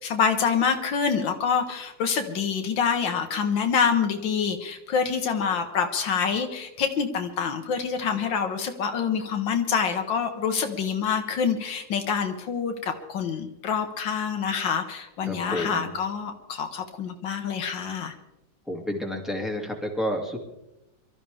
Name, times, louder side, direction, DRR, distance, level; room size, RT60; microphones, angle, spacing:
voice 1, 0.0-18.1, left 6 dB, 85° left, 5 dB, 1.9 m, -26 dB
voice 2, 15.3-15.9 18.7-20.4, left 1 dB, ahead, 0 dB, 2.4 m, -30 dB
23.5 x 13.5 x 3.5 m, 0.92 s
omnidirectional pair, 2.0 m